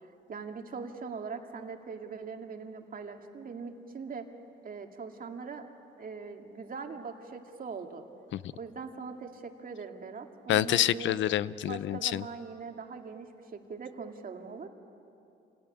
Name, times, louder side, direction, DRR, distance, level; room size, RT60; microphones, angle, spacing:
voice 1, 0.0-4.3 4.6-5.6 6.0-8.0 8.6-11.2 11.7-14.7, right 5 dB, 45° right, 4 dB, 2.4 m, -41 dB
voice 2, 10.5-12.2, left 12 dB, 70° left, 18 dB, 0.6 m, -27 dB
28.0 x 18.0 x 9.9 m, 2.8 s
cardioid pair, 90°, 20 cm